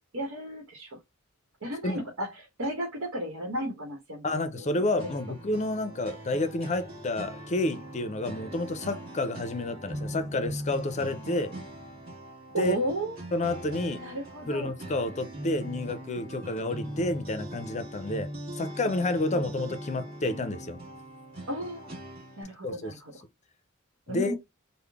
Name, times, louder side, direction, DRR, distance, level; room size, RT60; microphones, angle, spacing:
voice 1, 0.1-1.0 1.6-4.9 12.5-13.1 14.0-14.7 19.3-19.5 21.5-21.9 22.4-23.1 24.1-24.4, right 1 dB, 80° right, 1.1 m, -33 dB
voice 2, 4.2-11.5 12.6-12.8 13.3-14.0 14.5-18.3 18.6-20.8 22.6-22.9 24.1-24.4, left 2 dB, 35° left, 0.5 m, -30 dB
sound 1, 5.0-22.4, right 1 dB, 50° right, 1.5 m, -40 dB
3.7 x 2.1 x 3.4 m
head